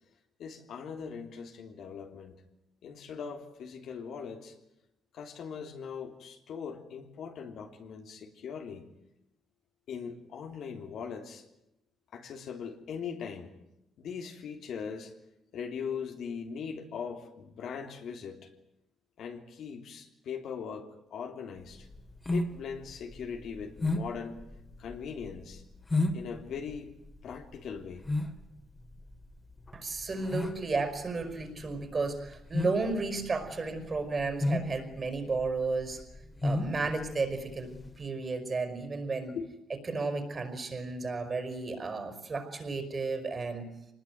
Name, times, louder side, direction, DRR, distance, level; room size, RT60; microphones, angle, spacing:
voice 1, 0.4-2.4 2.8-4.5 5.1-8.8 9.9-11.4 12.1-13.5 14.0-15.1 15.5-18.5 19.2-21.9 22.3-24.4 24.8-25.6 26.1-26.9 27.2-28.0 39.3-39.4, left 6 dB, 70° left, 4 dB, 3.3 m, -40 dB
sound 1, 21.6-38.0, left 2 dB, 20° left, 3.1 m, -34 dB
voice 2, 29.7-36.0 36.4-39.4 39.8-43.7, right 3 dB, 35° right, 8 dB, 5.2 m, -33 dB
25.0 x 20.0 x 9.4 m, 0.86 s
cardioid pair, 100°, 0 cm